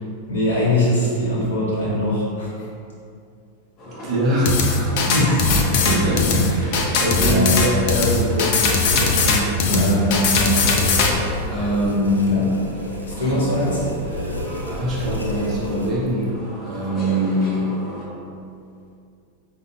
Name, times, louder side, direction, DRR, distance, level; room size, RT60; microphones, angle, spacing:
voice 1, 0.3-2.7 4.9-5.7 6.4-6.5 7.2-7.5 9.7-11.2 12.3-12.4 13.0-13.8, left 1 dB, 70° left, -7 dB, 1.0 m, -22 dB
sound 1, 3.8-18.1, equal, 30° left, 0.8 m, -37 dB
voice 2, 3.8-5.0 5.8-9.6 11.5-12.7 13.2-13.4 14.1-14.3 14.6-16.3 16.6-17.8, equal, 35° right, -6 dB, 0.9 m, -23 dB
sound 2, 4.5-11.1, left 4 dB, 50° left, 0.4 m, -19 dB
sound 3, 6.5-15.9, equal, 90° right, 0.3 m, -32 dB
5.0 x 2.9 x 2.2 m, 2.5 s
figure-of-eight pair, 90°, 0 cm